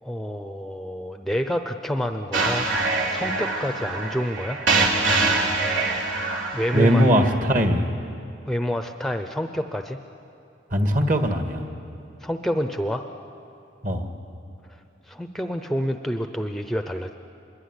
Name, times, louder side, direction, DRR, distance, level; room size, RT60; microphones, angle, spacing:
voice 1, 0.0-4.6 6.5-7.2 8.5-10.0 12.2-13.0 15.1-17.1, equal, ahead, 6 dB, 0.7 m, -28 dB
sound 1, 2.3-7.3, right 3 dB, 85° right, 3.6 m, -24 dB
voice 2, 6.7-7.9 10.7-11.6 13.8-14.1, equal, 45° right, 5 dB, 2.0 m, -20 dB
25.5 x 22.0 x 9.9 m, 2.6 s
head